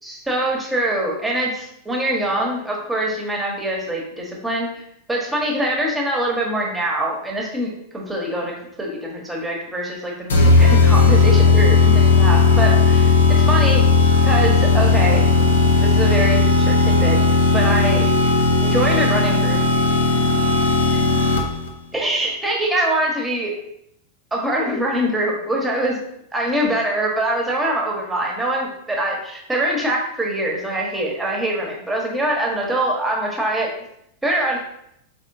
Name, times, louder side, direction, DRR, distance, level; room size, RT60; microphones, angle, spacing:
voice 1, 0.0-4.8 5.1-13.8 14.2-15.2 15.8-17.2 17.5-18.1 18.6-19.6 20.4-20.5 20.9-21.0 21.9-23.5 24.3-26.0 26.3-33.7 34.2-34.6, right 1 dB, 10° right, -2 dB, 1.2 m, -23 dB
sound 1, 10.3-21.7, left 4 dB, 65° left, 0.6 m, -15 dB
5.4 x 3.4 x 2.6 m, 0.76 s
figure-of-eight pair, 90°, 0 cm